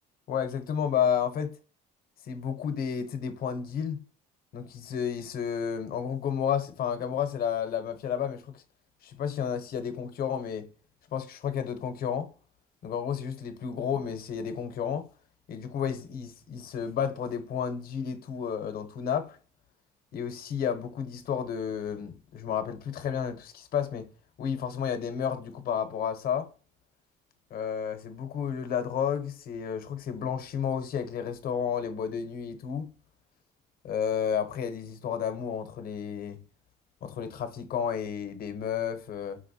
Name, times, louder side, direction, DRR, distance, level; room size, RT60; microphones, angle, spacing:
voice 1, 0.3-1.5 2.2-4.0 4.5-8.6 9.0-10.7 11.1-12.3 12.8-15.1 15.5-19.4 20.1-24.1 24.4-26.5 27.5-32.9 33.8-36.4 37.0-39.4, left 8 dB, 60° left, 0.8 m, -31 dB
5.3 x 2.9 x 2.7 m
cardioid pair, 110°, 17 cm